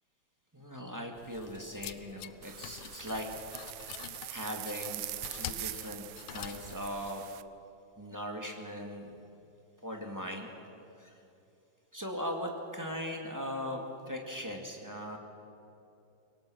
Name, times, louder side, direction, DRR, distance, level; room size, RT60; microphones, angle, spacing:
voice 1, 0.5-3.3 4.3-5.0 5.3-7.3 8.0-9.2 9.8-10.5 11.0-11.1 11.9-15.2, equal, 10° right, 1 dB, 1.9 m, -39 dB
sound 1, 1.2-7.1, left 12 dB, 85° left, 1.6 m, -46 dB
sound 2, 2.4-7.4, right 15 dB, 90° right, 1.6 m, -43 dB
24.0 x 18.0 x 6.4 m, 2.8 s
omnidirectional pair, 2.4 m